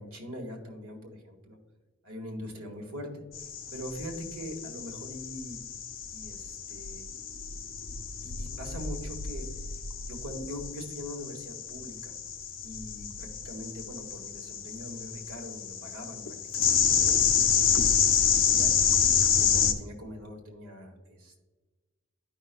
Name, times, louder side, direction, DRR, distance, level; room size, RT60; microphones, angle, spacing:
voice 1, 0.0-1.6 2.0-3.2 3.7-5.6 6.1-7.0 8.2-9.5 10.1-12.1 12.6-18.8 19.4-21.4, equal, 70° right, 2 dB, 1.8 m, -42 dB
sound 1, 3.3-19.7, left 7 dB, 60° left, 0.7 m, -28 dB
12.5 x 5.6 x 2.3 m, 1.2 s
head